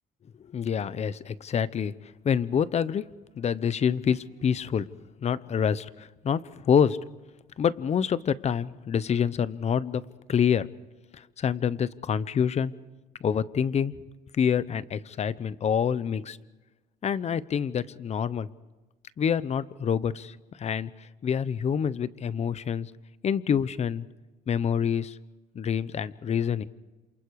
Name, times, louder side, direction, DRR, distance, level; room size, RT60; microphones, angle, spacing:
voice 1, 0.5-1.9 2.2-3.1 3.4-4.9 5.2-7.0 7.6-10.7 11.4-12.7 13.2-13.9 14.3-16.4 17.0-18.5 19.2-20.9 21.2-22.9 23.2-24.0 24.5-25.2 25.5-26.7, left 7 dB, 40° left, 17 dB, 0.9 m, -27 dB
28.5 x 27.5 x 4.8 m, 1.2 s
cardioid pair, 110°, 17 cm